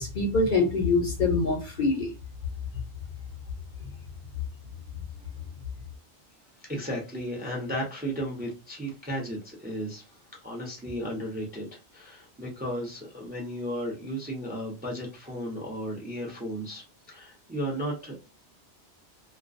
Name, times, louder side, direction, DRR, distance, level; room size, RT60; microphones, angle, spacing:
voice 1, 0.0-2.1, left 3 dB, 55° left, 1 dB, 0.6 m, -24 dB
voice 2, 6.7-10.1 10.4-18.2, equal, 10° right, -1 dB, 0.5 m, -34 dB
2.3 x 2.2 x 2.4 m, 0.29 s
omnidirectional pair, 1.2 m